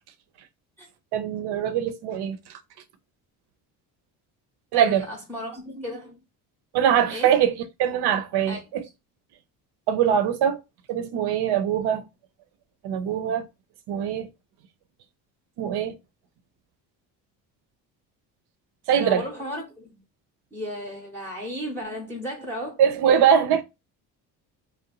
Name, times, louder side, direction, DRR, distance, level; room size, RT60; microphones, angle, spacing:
voice 1, 1.1-2.4 4.7-5.0 6.7-7.5 7.8-8.8 9.9-10.6 10.9-12.0 12.8-13.4 13.9-14.3 15.6-15.9 18.9-19.2 22.8-23.6, right 9 dB, 65° right, 0.6 m, -22 dB
voice 2, 4.7-6.2 7.1-7.4 8.5-8.9 19.0-20.0 20.5-22.8, equal, 5° left, 0.7 m, -35 dB
2.6 x 2.0 x 2.9 m
supercardioid pair, 70°, 42 cm